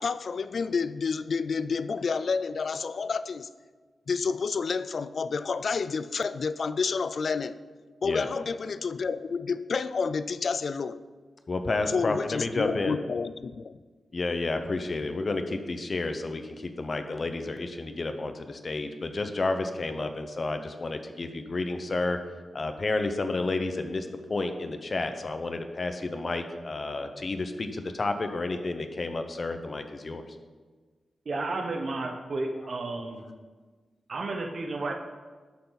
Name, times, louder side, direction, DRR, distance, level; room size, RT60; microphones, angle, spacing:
voice 1, 0.0-3.5 4.1-7.6 8.0-11.0 11.9-13.8, left 5 dB, 50° left, 14 dB, 0.4 m, -29 dB
voice 2, 11.5-13.0 14.1-22.2 22.5-30.2, left 3 dB, 35° left, 7 dB, 0.9 m, -31 dB
voice 3, 31.2-33.2 34.1-34.9, right 2 dB, 45° right, 3 dB, 1.0 m, -32 dB
18.5 x 6.6 x 4.1 m, 1.4 s
wide cardioid pair, 155°, 0 cm